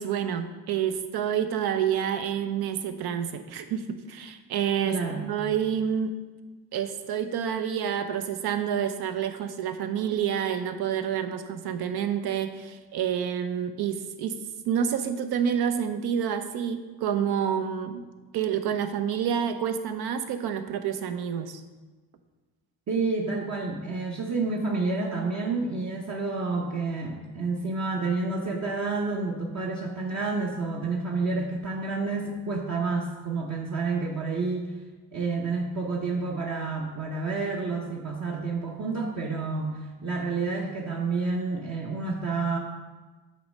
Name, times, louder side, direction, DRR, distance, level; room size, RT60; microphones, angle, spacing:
voice 1, 0.0-6.2 6.7-14.4 14.7-18.0 18.3-21.6, right 8 dB, 75° right, 8 dB, 0.7 m, -28 dB
voice 2, 4.8-5.3 22.9-34.7 35.1-42.6, right 3 dB, 45° right, -2 dB, 0.9 m, -29 dB
8.4 x 3.1 x 6.4 m, 1.3 s
cardioid pair, 105°, 38 cm